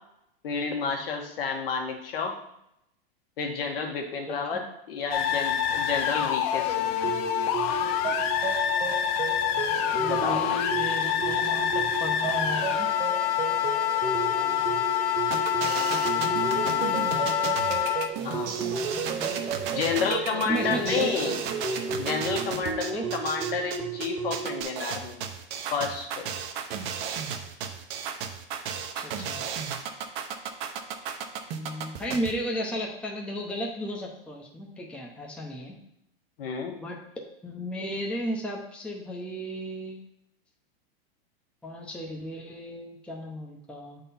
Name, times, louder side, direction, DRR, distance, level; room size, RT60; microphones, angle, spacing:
voice 1, 0.4-2.3 3.4-6.9 10.1-10.6 18.2-18.6 19.7-21.4 22.0-25.2 25.7-26.3 36.4-36.7, left 5 dB, 70° left, 2 dB, 1.5 m, -30 dB
voice 2, 4.3-4.6 9.9-12.9 14.3-14.8 15.6-17.4 18.2-19.4 20.4-21.3 22.9-23.0 29.0-29.5 31.5-35.8 36.7-37.0 37.4-40.0 41.6-44.0, equal, 5° left, -1 dB, 0.8 m, -35 dB
sound 1, 5.1-18.1, left 10 dB, 40° left, 0.6 m, -26 dB
sound 2, 7.0-24.6, right 6 dB, 15° right, 0.4 m, -33 dB
sound 3, 15.3-32.3, right 7 dB, 35° right, 0.8 m, -34 dB
8.0 x 3.9 x 4.2 m, 0.79 s
supercardioid pair, 140°, 30 cm